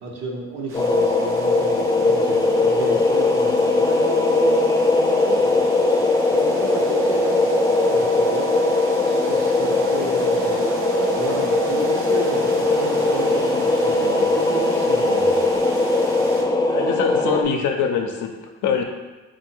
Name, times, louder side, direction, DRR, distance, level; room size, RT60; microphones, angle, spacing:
voice 1, 0.0-5.6 6.3-7.5 7.9-8.5 9.1-10.7 11.1-15.4, right 2 dB, 65° right, -2 dB, 1.1 m, -33 dB
sound 1, 0.7-17.4, left 2 dB, 15° left, 0.3 m, -19 dB
sound 2, 0.7-16.4, right 2 dB, 45° right, 0.8 m, -39 dB
voice 2, 16.7-18.3 18.6-18.8, left 7 dB, 80° left, 4 dB, 0.6 m, -22 dB
3.8 x 2.5 x 4.6 m, 1.2 s
cardioid pair, 90°, 30 cm